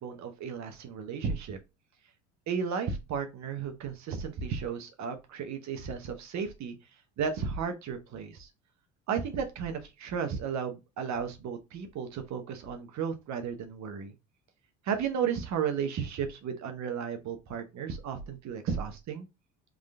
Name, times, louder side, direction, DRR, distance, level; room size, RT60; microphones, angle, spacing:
voice 1, 0.0-1.6 2.5-6.7 7.2-8.5 9.1-14.1 14.8-19.3, right 6 dB, 50° right, 7 dB, 0.9 m, -34 dB
3.7 x 3.2 x 2.3 m, 0.24 s
supercardioid pair, 90°, 36 cm